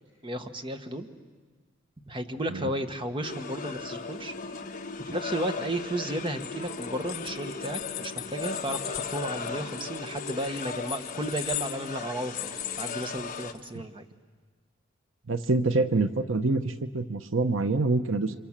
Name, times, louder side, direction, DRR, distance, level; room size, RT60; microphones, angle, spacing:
voice 1, 0.2-1.1 2.1-4.3 5.0-14.1, right 1 dB, 25° right, 6 dB, 1.3 m, -33 dB
sound 1, 3.2-13.5, left 4 dB, 40° left, 1.3 m, -38 dB
sound 2, 6.3-13.7, left 13 dB, 80° left, 0.9 m, -39 dB
voice 2, 15.3-18.3, right 3 dB, 75° right, 9 dB, 0.9 m, -26 dB
30.0 x 26.5 x 7.4 m, 1.4 s
head